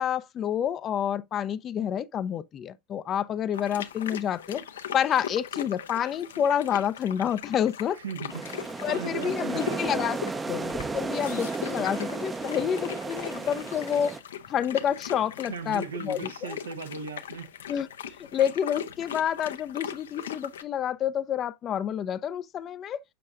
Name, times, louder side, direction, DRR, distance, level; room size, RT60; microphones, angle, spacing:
voice 1, 0.0-4.6 4.9-8.0 8.8-10.2 10.5-14.1 14.5-16.6 17.7-17.9 18.2-23.0, left 9 dB, 35° left, 0.6 m, -28 dB
sound 1, 3.5-20.6, left 8 dB, 75° left, 0.8 m, -40 dB
voice 2, 8.0-10.1 15.5-17.5, right 5 dB, 75° right, 1.1 m, -37 dB
sound 2, 8.3-14.2, right 3 dB, 15° right, 0.7 m, -33 dB
7.6 x 6.3 x 2.5 m
figure-of-eight pair, 80°, 0 cm